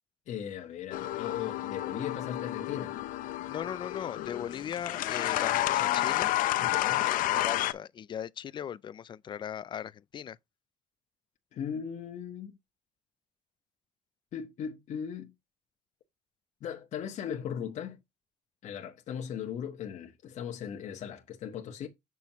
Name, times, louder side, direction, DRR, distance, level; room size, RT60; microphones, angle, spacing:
voice 1, 0.3-3.0 6.6-7.1 11.5-12.5 14.3-15.3 16.6-18.0 18.6-21.9, left 8 dB, 55° left, 1.2 m, -38 dB
sound 1, 0.9-7.7, left 15 dB, 75° left, 0.6 m, -30 dB
voice 2, 3.5-6.3 6.9-10.4, left 9 dB, 35° left, 0.4 m, -38 dB
7.2 x 6.1 x 3.0 m
cardioid pair, 150°, 14 cm